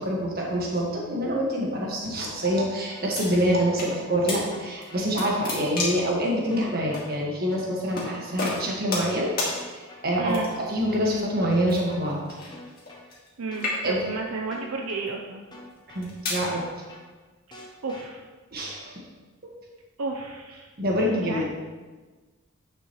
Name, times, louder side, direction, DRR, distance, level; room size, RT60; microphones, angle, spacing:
voice 1, 0.0-10.4 10.7-12.2 13.8-14.0 15.9-16.6 18.5-19.0 20.8-21.5, equal, 45° right, -2 dB, 1.6 m, -26 dB
sound 1, 2.5-3.0 3.5-4.0 4.5-5.0 5.5-6.0 6.5-7.0 7.5-8.0 8.5-9.0 9.5-10.0 10.5-11.0 11.5-12.0 12.5-13.0 13.5-14.0 14.5-15.0 15.5-16.0 16.5-17.0 17.5-18.0, left 1 dB, 20° left, 1.0 m, -46 dB
sound 2, 3.1-3.9 4.3-4.4 4.8-6.1 6.9-7.1 7.9-8.1 8.4-9.1 9.4-9.5 10.3-10.7 11.7-13.3 13.5-14.1 14.8-15.1 15.8-16.4, left 2 dB, 45° left, 2.1 m, -31 dB
voice 2, 10.2-10.5 13.4-15.4 17.5-18.2 20.0-20.7 21.1-21.4, right 3 dB, 75° right, 1 dB, 0.6 m, -32 dB
10.0 x 6.0 x 3.1 m, 1.3 s
head